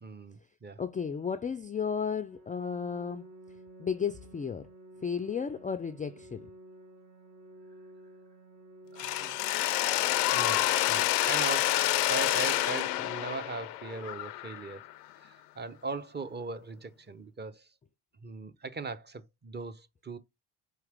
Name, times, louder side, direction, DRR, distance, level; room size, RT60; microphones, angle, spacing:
voice 1, 0.0-0.8 8.9-9.4 10.3-14.9 15.2-17.7 18.2-20.2, right 3 dB, 20° right, 0.7 m, -39 dB
voice 2, 0.8-3.2 3.8-4.7 5.0-6.5, left 6 dB, 20° left, 0.4 m, -33 dB
Organ, 2.3-13.3, right 1 dB, 60° right, 2.2 m, -53 dB
Mechanisms, 9.0-14.9, left 14 dB, 90° left, 0.6 m, -28 dB
4.8 x 2.9 x 3.4 m
hypercardioid pair, 55°, 46 cm